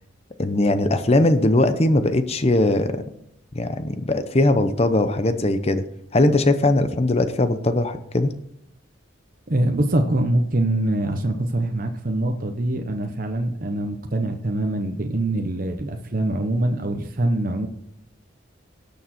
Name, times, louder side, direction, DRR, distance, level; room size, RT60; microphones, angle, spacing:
voice 1, 0.4-3.0 3.5-5.8 6.1-8.3, left 2 dB, 30° left, 10 dB, 0.7 m, -20 dB
voice 2, 9.5-17.7, right 1 dB, 45° right, 4 dB, 0.9 m, -24 dB
17.5 x 6.9 x 4.4 m, 0.79 s
head